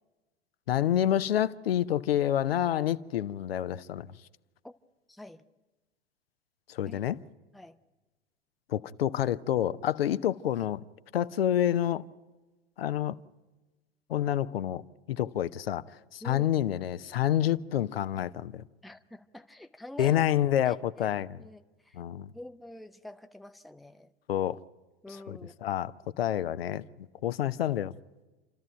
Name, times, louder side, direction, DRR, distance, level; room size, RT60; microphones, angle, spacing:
voice 1, 0.7-4.1 6.7-7.2 8.7-10.8 11.1-12.0 12.8-13.2 14.1-14.8 15.1-18.6 20.0-21.4 21.9-22.3 24.3-24.6 25.3-25.9 26.2-27.9, left 11 dB, 65° left, 0.7 m, -28 dB
voice 2, 5.1-5.4 6.8-7.0 7.5-7.8 16.2-16.5 18.8-20.2 20.6-22.0 22.3-24.1 25.0-25.5, left 1 dB, ahead, 0.7 m, -46 dB
29.0 x 13.5 x 9.1 m
figure-of-eight pair, 85°, 32 cm